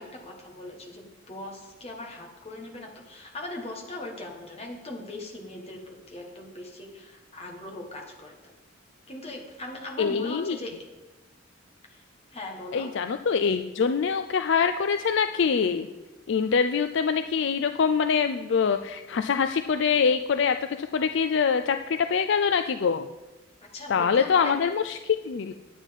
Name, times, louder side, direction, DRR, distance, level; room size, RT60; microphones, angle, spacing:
voice 1, 0.0-8.5 9.1-10.7 11.9-12.0 12.3-12.9 23.7-24.5, left 2 dB, 30° left, 1 dB, 1.7 m, -40 dB
voice 2, 10.0-10.6 12.7-15.9 16.3-23.1 23.9-25.5, left 6 dB, 60° left, 8 dB, 0.4 m, -24 dB
9.2 x 9.2 x 5.3 m, 1.1 s
head